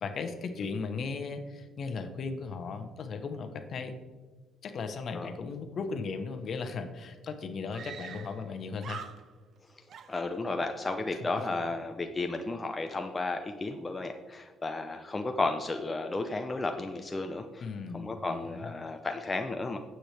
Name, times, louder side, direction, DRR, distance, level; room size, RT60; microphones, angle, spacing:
voice 1, 0.0-4.0 4.6-9.0 17.6-18.7, left 4 dB, 50° left, 8 dB, 1.0 m, -36 dB
Screaming, 6.9-7.0 7.7-8.5 8.8-9.6 9.9-10.8, right 7 dB, 50° right, 0.7 m, -45 dB
voice 2, 10.1-17.6 17.9-19.8, left 3 dB, 20° left, 5 dB, 0.6 m, -33 dB
9.4 x 8.0 x 3.4 m, 1.3 s
cardioid pair, 115°, 0 cm